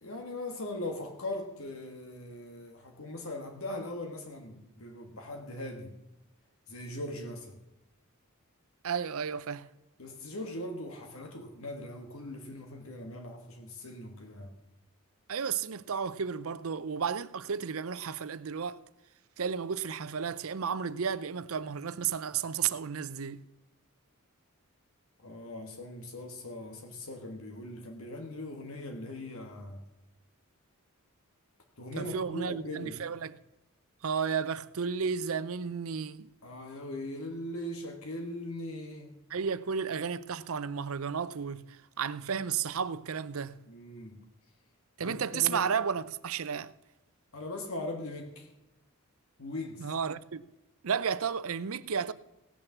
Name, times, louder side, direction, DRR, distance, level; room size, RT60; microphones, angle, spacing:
voice 1, 0.0-5.9 6.7-7.6 10.0-14.6 25.2-29.8 31.8-33.0 36.4-39.1 43.7-44.2 45.0-45.6 47.3-48.5 49.4-49.9, left 1 dB, 70° left, 1.7 m, -40 dB
voice 2, 8.8-9.7 15.3-18.8 19.4-23.4 32.0-33.4 34.0-36.3 39.3-43.6 45.0-46.7 49.8-50.4 50.8-52.1, right 6 dB, 70° right, 0.6 m, -33 dB
17.5 x 6.7 x 7.2 m
head